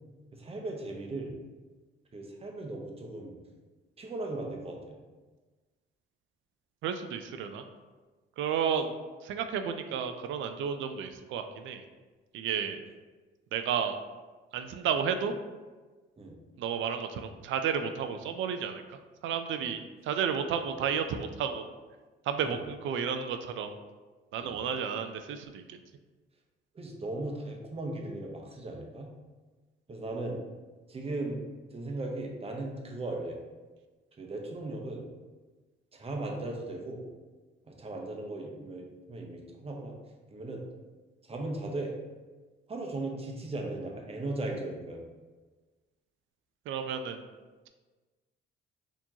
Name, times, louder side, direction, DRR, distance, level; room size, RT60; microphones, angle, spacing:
voice 1, 0.3-1.3 2.1-3.4 4.0-5.0 16.2-16.3 22.4-22.6 24.4-24.6 26.7-29.1 29.9-30.4 30.9-31.4 31.7-33.4 34.2-35.0 35.9-37.0 37.7-40.0 40.3-40.6 41.3-41.9 42.7-45.0, right 2 dB, 30° right, 0 dB, 0.8 m, -37 dB
voice 2, 6.8-7.6 8.4-8.9 9.2-11.8 12.3-12.8 13.5-14.0 14.5-15.3 16.6-18.8 19.2-21.6 22.3-23.7 24.3-25.8 46.7-47.2, right 7 dB, 75° right, 7 dB, 0.4 m, -32 dB
4.4 x 2.9 x 2.8 m, 1.3 s
cardioid pair, 90°, 20 cm